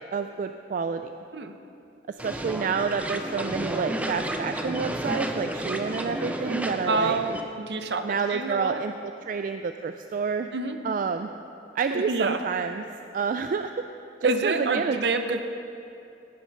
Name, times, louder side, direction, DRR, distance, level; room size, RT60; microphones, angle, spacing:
voice 1, 0.1-1.1 2.1-7.2 8.0-10.5 10.8-11.3 11.8-12.8 13.1-13.7 14.2-15.0 15.3-15.4, right 5 dB, 50° right, 8 dB, 0.3 m, -29 dB
sound 1, 2.2-7.4, right 1 dB, 10° right, 0.6 m, -31 dB
voice 2, 6.9-8.8 10.5-10.8 11.9-12.4 14.2-15.4, right 3 dB, 65° right, 7 dB, 0.8 m, -27 dB
16.5 x 6.8 x 5.4 m, 2.7 s
head